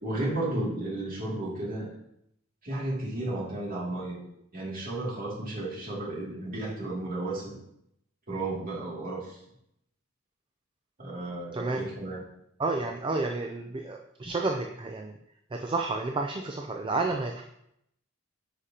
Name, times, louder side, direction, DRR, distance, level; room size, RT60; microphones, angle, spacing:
voice 1, 0.0-1.9 2.6-4.2 4.5-7.6 8.3-9.4 11.0-12.2, right 2 dB, 40° right, -6 dB, 2.4 m, -33 dB
voice 2, 11.5-11.9 12.6-15.1 15.5-17.4, right 3 dB, 25° right, 3 dB, 0.4 m, -30 dB
9.9 x 5.0 x 2.8 m, 0.77 s
head